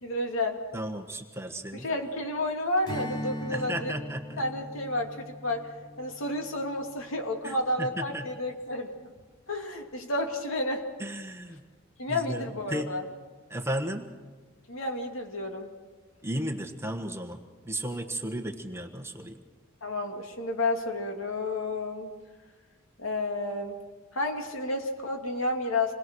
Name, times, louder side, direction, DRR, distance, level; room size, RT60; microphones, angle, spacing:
voice 1, 0.0-0.6 1.7-3.9 4.4-5.7 6.0-8.9 9.5-10.9 12.0-13.0 14.7-15.7 19.8-22.1 23.0-23.7 24.1-25.9, left 2 dB, 85° left, 3 dB, 2.7 m, -31 dB
voice 2, 0.7-1.9 3.5-4.4 7.4-8.2 11.0-11.6 12.1-12.9 13.5-14.1 16.2-17.4 17.6-19.4, right 1 dB, 15° right, 5 dB, 1.4 m, -34 dB
Strum, 2.8-7.6, equal, 25° left, 3.9 m, -40 dB
27.5 x 21.0 x 6.3 m, 1.4 s
head